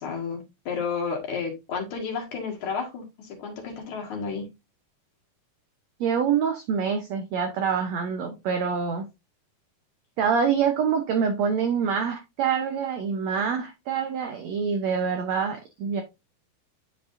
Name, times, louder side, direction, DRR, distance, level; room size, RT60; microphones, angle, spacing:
voice 1, 0.0-4.5, left 5 dB, 60° left, 2.9 m, -32 dB
voice 2, 6.0-9.1 10.2-16.0, right 6 dB, 75° right, 1.6 m, -26 dB
11.0 x 4.8 x 2.6 m
omnidirectional pair, 4.2 m